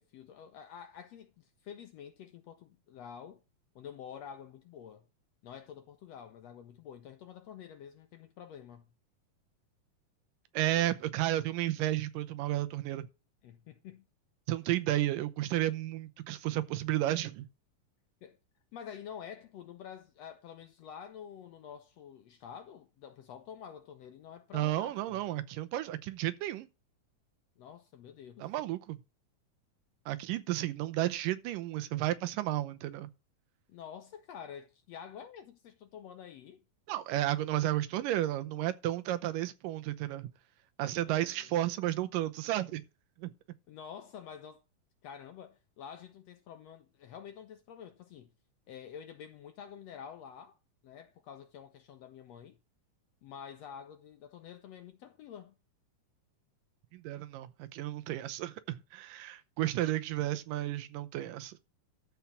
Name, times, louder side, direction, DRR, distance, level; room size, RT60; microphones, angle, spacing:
voice 1, 0.0-3.4 3.7-5.1 5.4-8.9 13.4-14.0 18.2-18.4 18.7-25.2 27.6-28.5 33.7-36.6 41.0-41.5 43.7-44.6 45.0-48.3 48.7-50.6 50.8-52.6 53.2-55.5, left 8 dB, 75° left, 1.6 m, -48 dB
voice 2, 10.5-13.1 14.5-17.5 24.5-26.7 28.4-29.0 30.1-33.1 36.9-40.3 40.8-42.8 43.2-43.3 56.9-61.6, right 14 dB, 90° right, 2.5 m, -32 dB
13.0 x 4.6 x 7.2 m
omnidirectional pair, 3.7 m